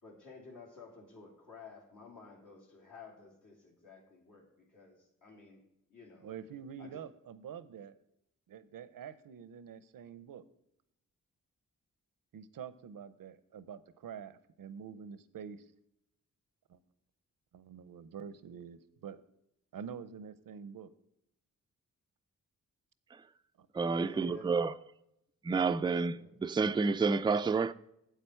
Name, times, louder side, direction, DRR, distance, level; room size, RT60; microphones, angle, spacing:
voice 1, 0.0-5.6 5.9-6.3 6.8-6.9 23.8-24.7 25.8-26.3, left 4 dB, 70° left, 2.8 m, -53 dB
voice 2, 6.2-7.9 8.5-10.4 12.3-15.7 16.7-16.8 17.5-19.2 19.7-20.9 23.6-23.7, right 7 dB, 80° right, 0.7 m, -46 dB
voice 3, 23.7-24.7 25.4-27.7, right 4 dB, 15° right, 0.3 m, -29 dB
8.2 x 8.2 x 4.4 m
cardioid pair, 75°, 34 cm